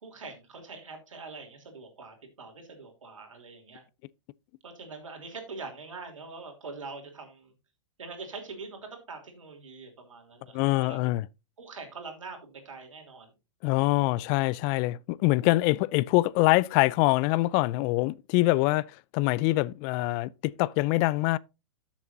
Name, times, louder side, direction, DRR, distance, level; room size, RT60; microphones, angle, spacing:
voice 1, 0.0-3.8 4.6-7.5 8.0-11.1 11.6-13.3, right 4 dB, 90° right, 3.1 m, -43 dB
voice 2, 10.5-11.3 13.6-18.9 19.1-21.4, left 20 dB, 40° left, 0.4 m, -24 dB
13.0 x 7.2 x 2.6 m
hypercardioid pair, 115°, 16 cm